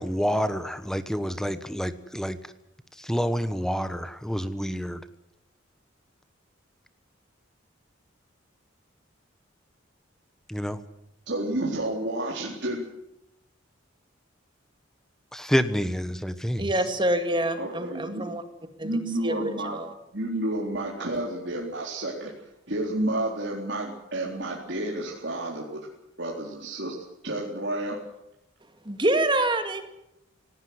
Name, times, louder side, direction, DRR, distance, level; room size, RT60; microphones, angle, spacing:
voice 1, 0.0-2.4 3.0-5.0 10.5-10.8 15.3-16.7, equal, 5° left, 12 dB, 1.2 m, -28 dB
voice 2, 11.3-12.8 17.6-18.2 18.8-19.8 20.1-25.8 26.2-27.0 27.2-28.0, right 1 dB, 60° right, -3 dB, 4.1 m, -30 dB
voice 3, 16.6-18.4 18.8-18.9 19.2-19.9 28.9-29.8, right 1 dB, 25° right, 8 dB, 2.1 m, -26 dB
18.5 x 18.5 x 9.7 m, 0.83 s
head